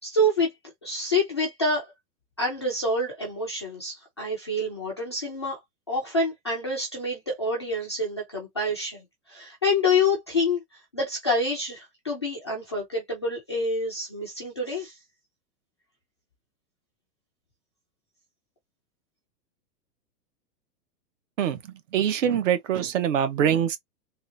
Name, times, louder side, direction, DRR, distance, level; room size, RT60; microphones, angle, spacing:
voice 1, 0.0-0.5 0.8-1.9 2.4-5.6 5.9-15.0, left 2 dB, 20° left, 0.4 m, -27 dB
voice 2, 21.9-23.8, right 9 dB, 50° right, 0.9 m, -23 dB
3.7 x 2.4 x 2.6 m
supercardioid pair, 165°, 49 cm